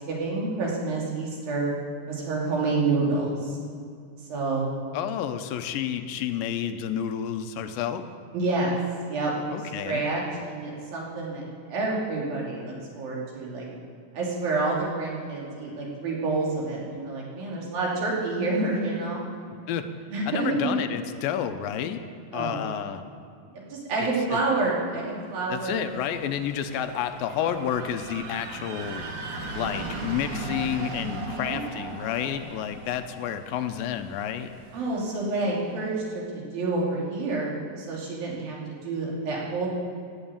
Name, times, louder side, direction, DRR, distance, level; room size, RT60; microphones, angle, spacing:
voice 1, 0.0-1.7 2.1-3.6 4.3-4.7 8.3-8.7 9.1-13.7 14.1-19.2 20.1-20.7 22.3-22.6 23.5-25.8 31.0-31.6 34.7-39.7, right 3 dB, 80° right, -4 dB, 4.6 m, -28 dB
voice 2, 4.9-8.0 9.5-10.0 19.7-19.9 20.3-22.0 22.3-23.0 24.0-24.4 25.5-29.0 29.5-34.5, left 9 dB, 85° left, 8 dB, 2.5 m, -30 dB
Roller Coaster Screams A, 25.4-35.3, right 3 dB, 50° right, 1.4 m, -38 dB
16.5 x 7.3 x 8.8 m, 2.3 s
omnidirectional pair, 4.1 m